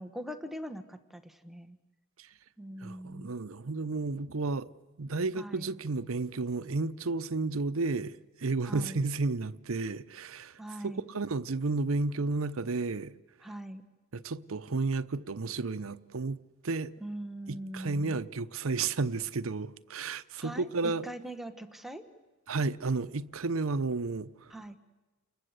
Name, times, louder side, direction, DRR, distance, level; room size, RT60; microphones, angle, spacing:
voice 1, 0.0-1.8 2.6-3.3 5.4-5.7 8.7-9.0 10.6-11.0 13.4-13.8 17.0-18.2 20.4-22.0 24.5-24.8, right 1 dB, ahead, 1.2 m, -42 dB
voice 2, 2.8-4.7 5.0-13.1 14.1-16.4 16.6-16.9 17.5-21.1 22.5-24.5, right 3 dB, 80° right, 0.8 m, -32 dB
30.0 x 21.0 x 8.1 m
head